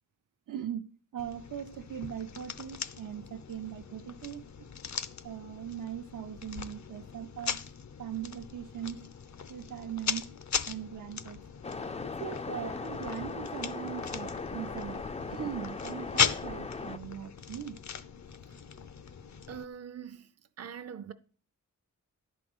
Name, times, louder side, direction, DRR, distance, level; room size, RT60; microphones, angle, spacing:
voice 1, 0.5-4.5 5.2-7.6 8.0-9.1 9.5-10.4 10.7-11.4 12.0-15.0 15.3-17.8, right 9 dB, 85° right, 0.7 m, -40 dB
sound 1, 1.2-19.7, left 7 dB, 60° left, 0.6 m, -38 dB
Waves surf, 11.6-17.0, left 4 dB, 20° left, 0.3 m, -38 dB
voice 2, 19.5-20.3 20.6-21.1, right 7 dB, 50° right, 0.5 m, -42 dB
11.0 x 4.3 x 7.8 m
wide cardioid pair, 135°, 32 cm